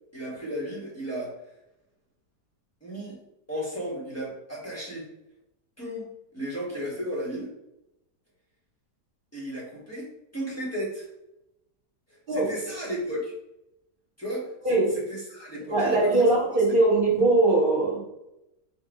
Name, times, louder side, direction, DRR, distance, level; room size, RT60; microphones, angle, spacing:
voice 1, 0.1-1.3 2.8-3.2 3.5-5.1 5.8-7.5 9.3-10.1 10.3-11.1 12.3-13.3 14.2-14.8 15.1-16.3 16.7-16.8, equal, 10° left, -6 dB, 1.2 m, -34 dB
voice 2, 15.7-18.1, right 2 dB, 30° right, -4 dB, 1.5 m, -21 dB
4.6 x 2.4 x 4.7 m, 0.88 s
omnidirectional pair, 1.8 m